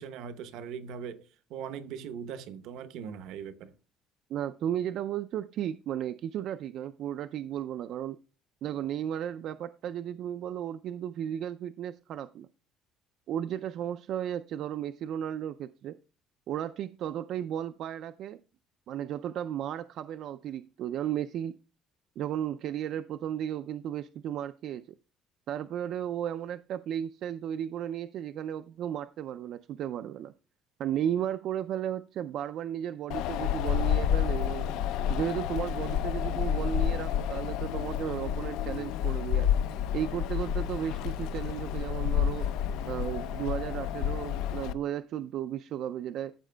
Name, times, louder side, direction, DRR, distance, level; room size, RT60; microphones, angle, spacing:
voice 1, 0.0-3.7, right 7 dB, 70° right, 0.8 m, -40 dB
voice 2, 4.3-8.2 8.6-12.5 13.3-16.0 16.5-18.4 18.9-21.6 22.2-25.0 25.5-30.3 30.8-34.7 35.1-39.5 39.9-42.5 42.9-46.3, right 10 dB, 50° right, 0.3 m, -34 dB
Wind, 33.1-44.7, left 9 dB, 80° left, 0.5 m, -30 dB
14.0 x 7.2 x 2.2 m
cardioid pair, 170°, 0 cm